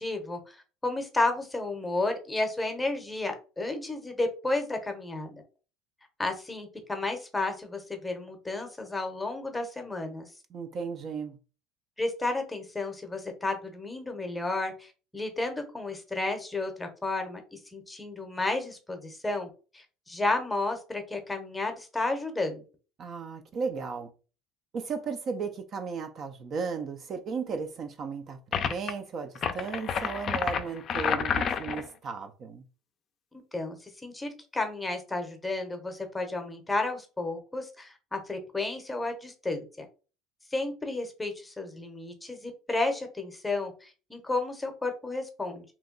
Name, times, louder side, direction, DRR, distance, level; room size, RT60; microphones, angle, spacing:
voice 1, 0.0-5.4 6.2-10.3 12.0-19.5 19.7-22.6 33.5-39.9 40.5-45.6, left 2 dB, 10° left, 0.7 m, -32 dB
voice 2, 10.5-11.4 23.0-24.1 24.7-32.6, right 5 dB, 40° right, 0.4 m, -35 dB
sound 1, 28.5-28.9 29.3-31.9, left 7 dB, 40° left, 0.4 m, -29 dB
2.8 x 2.2 x 3.8 m
supercardioid pair, 120°, 0 cm